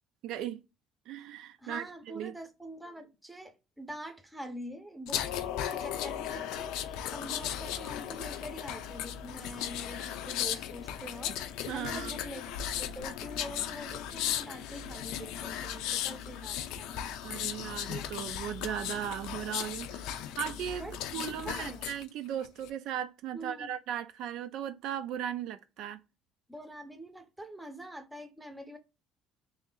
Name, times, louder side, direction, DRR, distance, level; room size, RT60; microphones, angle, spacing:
voice 1, 0.2-0.6 1.1-2.3 11.7-12.2 17.2-20.9 21.1-26.0, right 10 dB, 65° right, 0.4 m, -37 dB
voice 2, 1.6-5.2 5.7-11.4 11.7-12.4 12.8-17.0 20.8-21.9 23.3-23.7 26.5-28.8, equal, 5° right, 0.6 m, -45 dB
sound 1, 5.1-22.0 22.4-22.7, left 10 dB, 80° left, 0.4 m, -36 dB
3.1 x 2.7 x 3.7 m
cardioid pair, 150°, 0 cm